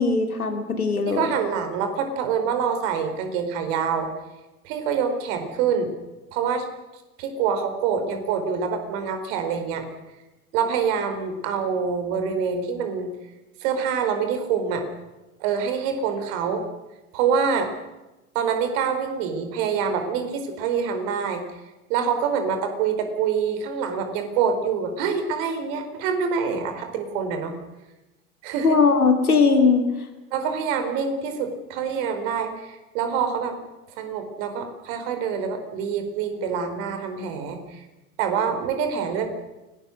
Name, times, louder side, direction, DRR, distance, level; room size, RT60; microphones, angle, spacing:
voice 1, 0.0-1.3 28.6-29.9, left 4 dB, 85° left, 6 dB, 2.9 m, -19 dB
voice 2, 1.1-4.1 4.6-5.9 6.3-6.7 7.2-9.9 10.5-13.1 13.6-14.8 15.4-16.6 17.1-17.7 18.3-21.4 21.9-27.6 28.4-28.8 30.3-33.5 34.0-37.8 38.2-39.3, right 6 dB, 55° right, 7 dB, 4.6 m, -26 dB
29.0 x 19.5 x 6.5 m, 1.0 s
figure-of-eight pair, 75°, 43 cm